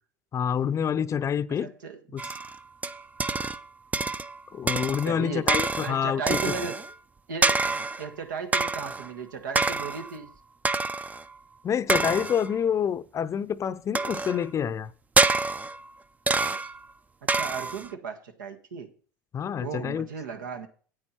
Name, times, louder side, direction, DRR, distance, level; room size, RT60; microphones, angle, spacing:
voice 1, 0.3-1.7 2.1-2.3 4.5-6.4 11.6-14.9 19.3-20.1, left 8 dB, 30° left, 0.6 m, -27 dB
voice 2, 1.6-2.0 5.0-6.8 7.3-7.6 8.0-10.3 17.2-18.9 19.6-20.7, right 5 dB, 90° right, 1.5 m, -36 dB
sound 1, 2.2-3.7 3.9-4.4 4.7-6.9 7.4-8.1 8.5-9.1 9.6-10.2 10.7-11.2 11.9-12.6 13.9-14.5 15.2-15.9 16.3-16.8 17.3-17.9, right 3 dB, 15° right, 0.4 m, -27 dB
9.7 x 8.4 x 4.4 m
hypercardioid pair, 100°, 10 cm